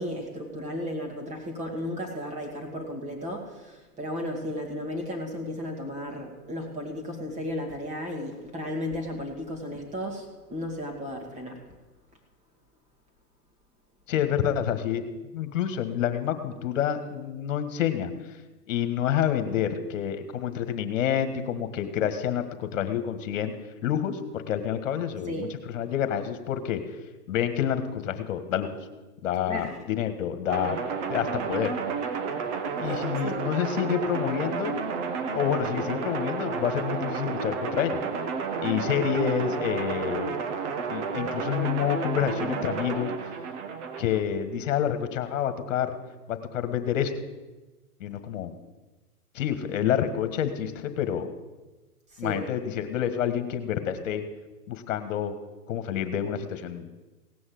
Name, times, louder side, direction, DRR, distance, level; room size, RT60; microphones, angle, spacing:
voice 1, 0.0-11.6 25.3-25.5 29.5-29.8 32.8-33.4 52.1-52.4, left 1 dB, 15° right, 2 dB, 2.3 m, -34 dB
voice 2, 14.1-15.0 15.3-18.4 18.7-23.5 23.8-26.8 27.3-28.8 29.2-30.8 31.1-31.7 32.8-34.8 35.3-38.0 38.6-40.4 40.9-43.1 44.0-46.0 46.3-47.1 48.0-48.5 49.3-51.3 52.2-54.2 54.7-55.3 55.7-57.0, left 9 dB, 55° left, 9 dB, 1.7 m, -28 dB
sound 1, 30.5-44.2, right 5 dB, 50° right, 1.5 m, -31 dB
17.5 x 6.4 x 7.8 m, 1.1 s
hypercardioid pair, 145°, 45 cm